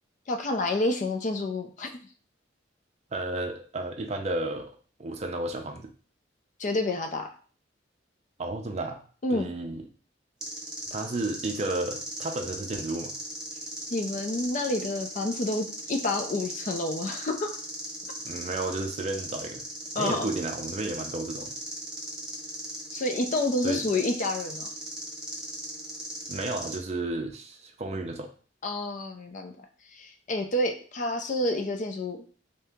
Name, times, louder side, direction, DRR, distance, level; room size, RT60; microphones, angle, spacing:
voice 1, 0.3-1.9 6.6-7.3 9.2-9.5 13.9-17.6 20.0-20.3 22.9-24.7 28.6-29.7 29.9-32.2, left 2 dB, 40° left, 5 dB, 0.4 m, -29 dB
voice 2, 3.1-4.7 5.0-5.9 8.4-9.0 9.3-9.9 10.9-13.1 18.2-19.7 19.9-21.6 23.6-23.8 26.3-28.3, right 2 dB, 35° right, 4 dB, 0.5 m, -32 dB
sound 1, 10.4-26.8, right 1 dB, 5° right, 0.8 m, -38 dB
2.8 x 2.7 x 3.4 m, 0.41 s
head